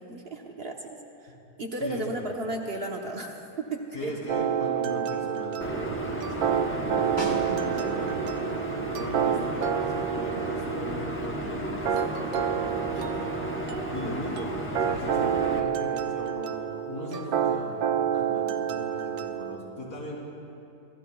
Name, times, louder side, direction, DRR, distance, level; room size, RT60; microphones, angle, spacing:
voice 1, 0.0-4.1 9.1-9.5 14.0-14.4, right 2 dB, 45° right, 2 dB, 1.0 m, -35 dB
voice 2, 3.9-8.3 8.9-13.3 13.9-20.2, left 1 dB, 60° left, -5 dB, 3.6 m, -39 dB
sound 1, 4.3-19.6, right 8 dB, 70° right, 1.1 m, -29 dB
sound 2, 5.6-15.6, right 2 dB, 15° left, 0.5 m, -33 dB
Snare drum, 7.2-8.1 12.5-12.6, equal, 15° right, 2.0 m, -36 dB
26.5 x 15.0 x 2.3 m, 2.9 s
omnidirectional pair, 1.7 m